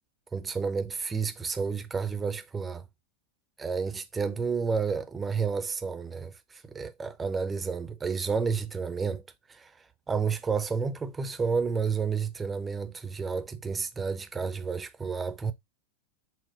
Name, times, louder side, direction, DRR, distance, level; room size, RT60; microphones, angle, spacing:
voice 1, 0.3-2.9 3.6-9.2 9.5-15.5, right 5 dB, 15° right, 0.6 m, -31 dB
6.3 x 2.2 x 3.9 m
figure-of-eight pair, 90°, 0 cm